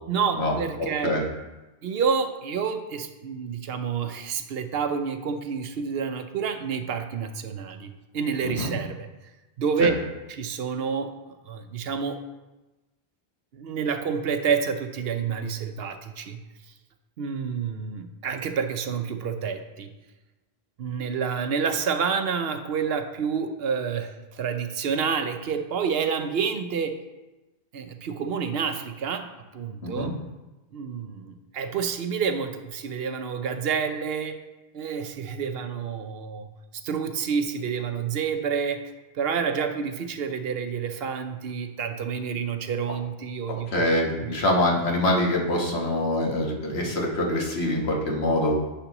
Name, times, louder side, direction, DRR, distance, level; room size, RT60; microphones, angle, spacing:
voice 1, 0.1-1.1 1.8-9.1 9.6-10.0 10.3-11.1 11.5-12.2 13.5-16.4 17.2-19.9 20.8-27.0 27.7-30.1 30.7-34.4 34.7-36.5 36.7-38.8 39.1-44.4, right 6 dB, 75° right, 7 dB, 0.9 m, -28 dB
voice 2, 43.7-48.5, left 1 dB, 85° left, -1 dB, 1.6 m, -24 dB
10.0 x 5.8 x 3.0 m, 1.1 s
omnidirectional pair, 1.1 m